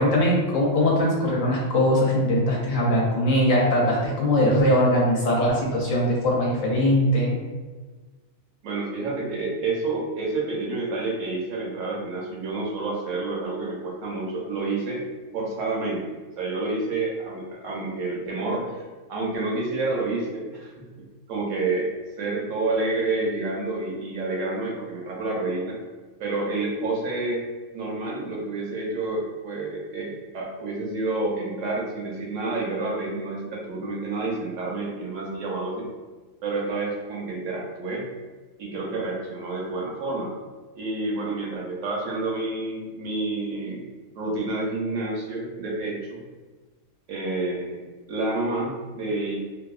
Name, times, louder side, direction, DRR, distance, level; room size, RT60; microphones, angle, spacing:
voice 1, 0.0-7.4, left 1 dB, 65° left, -3 dB, 0.9 m, -21 dB
voice 2, 8.6-15.0 15.3-18.8 19.1-21.9 22.2-25.8 26.2-27.4 27.7-35.9 36.4-38.1 38.6-40.3 40.8-43.9 44.2-46.2 47.1-47.8 48.1-49.3, right 3 dB, 70° right, -2 dB, 0.9 m, -29 dB
2.7 x 2.3 x 2.3 m, 1.3 s
omnidirectional pair, 1.5 m